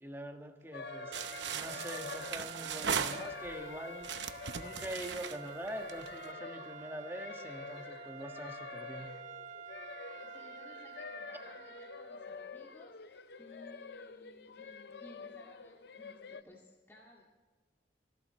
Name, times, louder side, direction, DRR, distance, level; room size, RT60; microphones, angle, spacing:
voice 1, 0.0-4.1 4.6-9.1, equal, 15° right, 4 dB, 1.4 m, -44 dB
sound 1, 0.7-16.4, left 5 dB, 65° left, 0.6 m, -48 dB
sound 2, 0.8-12.3, right 6 dB, 45° right, 0.9 m, -49 dB
sound 3, 1.1-3.6 4.0-6.2, right 7 dB, 85° right, 0.8 m, -38 dB
voice 2, 10.1-17.3, left 1 dB, 15° left, -4 dB, 2.1 m, -59 dB
27.0 x 12.5 x 3.2 m, 1.4 s
head